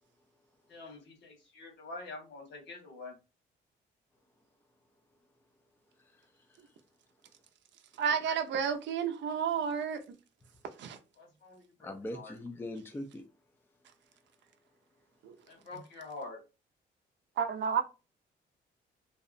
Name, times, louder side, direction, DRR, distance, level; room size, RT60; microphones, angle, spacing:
voice 1, 0.7-3.2 11.2-12.4 15.5-16.4, left 3 dB, 65° left, 1.3 m, -46 dB
voice 2, 6.0-6.7 8.3-8.4 11.8-13.2, left 1 dB, 10° left, 0.4 m, -42 dB
voice 3, 8.0-10.0 10.8-11.0 15.2-15.3 17.4-17.8, right 7 dB, 65° right, 0.5 m, -31 dB
2.7 x 2.0 x 2.5 m
cardioid pair, 90°, 20 cm